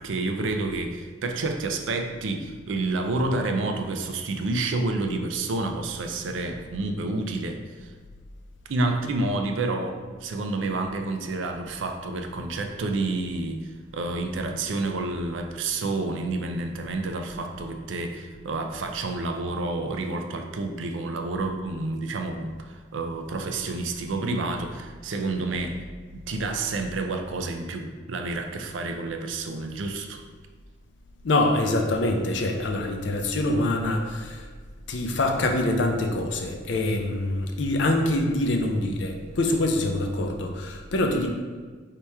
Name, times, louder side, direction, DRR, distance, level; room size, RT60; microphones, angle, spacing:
voice 1, 0.0-7.9 8.7-25.8 26.1-30.2, right 2 dB, 80° right, 4 dB, 0.5 m, -29 dB
voice 2, 31.2-34.4 34.9-41.3, left 2 dB, 65° left, 3 dB, 0.5 m, -25 dB
3.4 x 2.9 x 4.5 m, 1.5 s
head